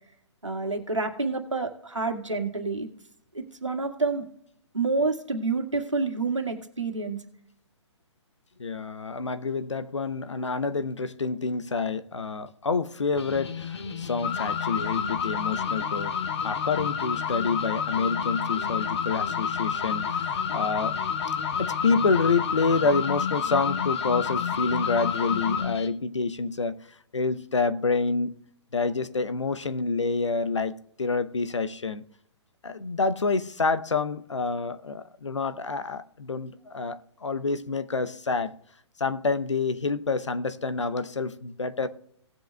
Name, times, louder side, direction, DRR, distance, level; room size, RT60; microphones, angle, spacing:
voice 1, 0.4-2.9 3.3-4.2 4.7-7.2, right 3 dB, 90° right, 1.9 m, -28 dB
voice 2, 8.6-16.1 16.4-21.0 21.6-26.8 27.1-28.3 28.7-32.0 32.6-38.5 39.0-41.9, left 4 dB, 80° left, 0.8 m, -28 dB
sound 1, 13.1-25.9, left 7 dB, 65° left, 1.1 m, -36 dB
sound 2, 14.2-25.6, left 7 dB, 35° left, 0.9 m, -30 dB
18.5 x 7.8 x 2.3 m
figure-of-eight pair, 130°, 15 cm